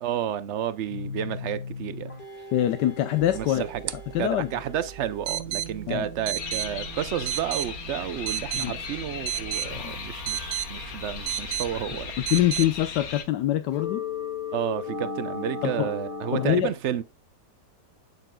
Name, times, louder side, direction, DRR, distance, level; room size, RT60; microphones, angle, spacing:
voice 1, 0.0-2.1 3.3-3.9 4.2-12.1 14.5-17.0, right 10 dB, 65° right, 0.7 m, -31 dB
sound 1, 0.9-16.5, left 4 dB, 30° left, 1.9 m, -39 dB
voice 2, 2.5-3.6 4.1-4.5 5.9-6.0 8.5-8.7 9.7-9.9 12.3-14.0 15.6-15.9 16.3-16.7, left 13 dB, 80° left, 1.3 m, -24 dB
sound 2, 3.2-12.7, right 13 dB, 85° right, 1.3 m, -35 dB
sound 3, 6.4-13.2, left 6 dB, 60° left, 1.6 m, -37 dB
8.2 x 7.9 x 2.2 m
omnidirectional pair, 1.8 m